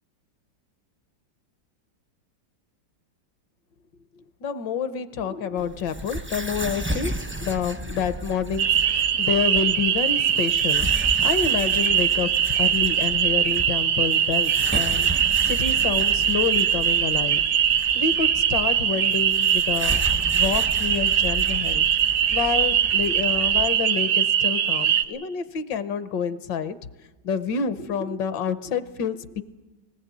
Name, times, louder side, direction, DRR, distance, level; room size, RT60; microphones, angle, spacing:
voice 1, 4.2-7.1 7.4-10.9 11.2-17.4 17.7-20.1 20.3-21.9 22.3-26.8 27.2-29.4, left 6 dB, 70° left, 13 dB, 1.5 m, -28 dB
sound 1, 5.6-23.7, right 1 dB, 15° right, 0.4 m, -34 dB
sound 2, 8.6-25.0, right 9 dB, 80° right, 1.7 m, -22 dB
19.5 x 18.5 x 8.4 m, 1.2 s
omnidirectional pair, 2.1 m